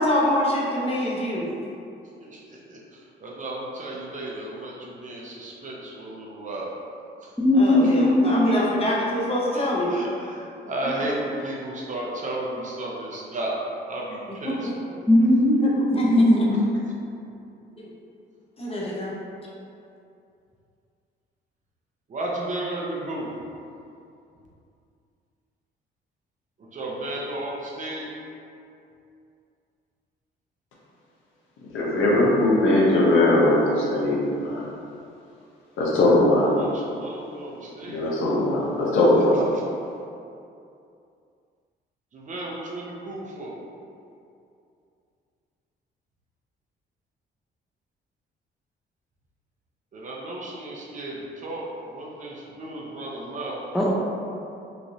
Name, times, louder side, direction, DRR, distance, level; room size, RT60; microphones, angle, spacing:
voice 1, 0.0-1.5 7.5-10.0 14.4-14.7 15.6-16.1 16.4-16.5 17.8-17.9 18.6-19.1, left 1 dB, 30° left, -5 dB, 0.7 m, -25 dB
voice 2, 2.2-6.7 7.2-7.3 7.8-7.9 8.4-8.5 9.5-13.5 13.9-14.7 16.5-16.9 22.1-23.3 26.6-28.1 36.3-38.1 39.5-39.6 42.1-43.6 49.9-53.6, right 1 dB, 40° right, -4 dB, 0.6 m, -34 dB
voice 3, 7.4-8.5 15.1-16.5 53.7-53.9, left 1 dB, ahead, -4 dB, 0.4 m, -18 dB
voice 4, 31.6-34.7 35.8-36.6 37.9-39.5, left 1 dB, 80° left, -5 dB, 0.7 m, -20 dB
3.1 x 2.5 x 2.6 m, 2.6 s
cardioid pair, 90°, 20 cm